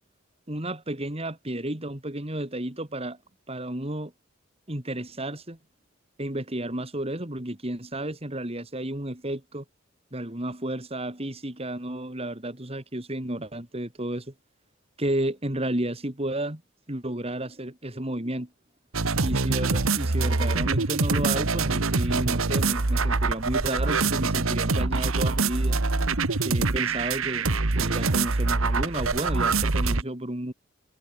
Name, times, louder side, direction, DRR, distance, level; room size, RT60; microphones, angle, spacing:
voice 1, 0.5-3.2 3.5-4.1 4.7-5.6 6.2-9.6 10.1-14.3 15.0-16.6 16.9-18.5 19.2-25.8 26.4-27.5 27.7-30.5, right 1 dB, 30° right, 2.8 m, -32 dB
sound 1, 18.9-30.0, right 3 dB, 90° right, 1.5 m, -24 dB
head